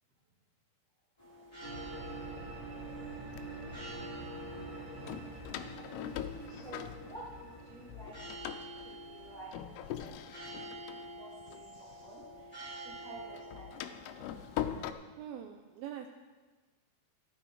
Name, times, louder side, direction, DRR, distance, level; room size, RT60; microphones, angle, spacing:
sound 1, 1.2-14.9, right 1 dB, 10° left, 2.6 m, -49 dB
sound 2, 1.6-10.5, right 2 dB, 45° right, 1.5 m, -47 dB
Door, 1.9-2.0 2.7-3.8 5.0-7.6 7.9-12.4 12.7-14.9, left 11 dB, 80° left, 2.6 m, -42 dB
voice 1, 6.5-8.2 8.8-13.8, right 2 dB, 30° right, -10 dB, 5.6 m, -51 dB
voice 2, 15.2-16.1, right 10 dB, 80° right, 5 dB, 2.2 m, -43 dB
14.0 x 9.1 x 4.7 m, 1.3 s
omnidirectional pair, 4.8 m